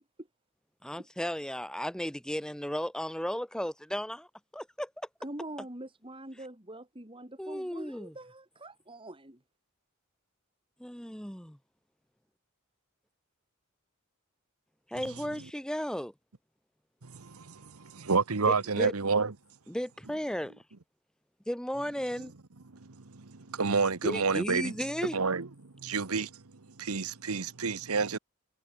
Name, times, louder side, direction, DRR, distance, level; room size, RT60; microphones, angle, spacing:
voice 1, 0.8-4.3 4.5-4.9 7.4-8.1 10.8-11.6 14.9-16.1 18.5-18.9 19.7-20.5 21.5-22.3 24.0-25.2, equal, 5° left, 2.0 m, -34 dB
voice 2, 5.2-9.4, right 1 dB, 25° right, 4.1 m, -44 dB
voice 3, 17.0-19.3 22.8-24.7 25.1-26.4 26.8-28.2, right 4 dB, 85° right, 1.2 m, -30 dB
head